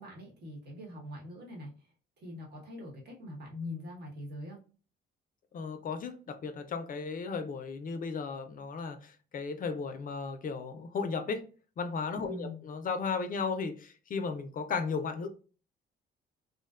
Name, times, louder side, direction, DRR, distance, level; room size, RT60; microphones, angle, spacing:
voice 1, 0.0-1.9 2.2-4.6 12.2-12.6, left 1 dB, 55° right, -1 dB, 1.1 m, -43 dB
voice 2, 5.5-11.4 11.8-15.3, left 5 dB, 45° left, 8 dB, 0.4 m, -35 dB
2.5 x 2.1 x 2.3 m, 0.37 s
cardioid pair, 90°, 20 cm